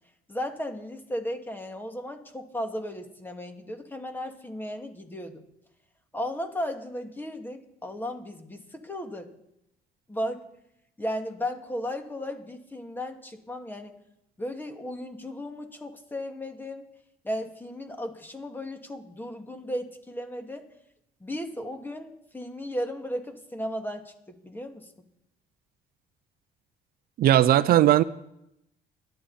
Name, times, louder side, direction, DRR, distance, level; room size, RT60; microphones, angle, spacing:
voice 1, 0.3-5.4 6.1-9.3 10.1-10.4 11.0-13.9 14.4-16.8 17.2-20.7 21.2-24.9, equal, 10° left, 5 dB, 2.2 m, -35 dB
voice 2, 27.2-28.0, right 12 dB, 65° right, 14 dB, 0.6 m, -18 dB
28.0 x 11.5 x 4.2 m, 0.82 s
cardioid pair, 110°, 17 cm